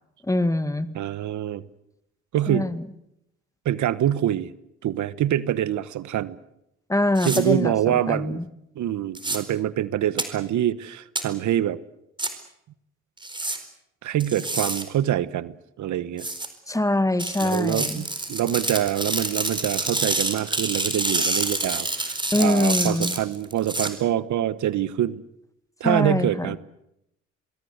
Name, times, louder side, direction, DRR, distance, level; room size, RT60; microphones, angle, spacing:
voice 1, 0.2-0.9 2.5-2.9 6.9-8.5 16.7-18.0 22.3-23.1 25.8-26.6, left 1 dB, 10° left, 13 dB, 1.8 m, -24 dB
voice 2, 0.9-1.6 2.3-2.7 3.6-4.5 4.8-6.4 7.2-8.4 8.8-11.8 14.0-16.3 17.4-25.2 25.8-26.6, right 11 dB, 70° right, 16 dB, 1.2 m, -25 dB
sound 1, 7.2-7.4 9.1-9.4 10.2-10.3 11.2-11.3 12.2-12.3 13.2-13.6 14.2-14.8 16.2-16.5 17.2-23.9, right 2 dB, 15° right, 4.4 m, -27 dB
26.0 x 22.5 x 8.1 m, 0.82 s
cardioid pair, 90°, 30 cm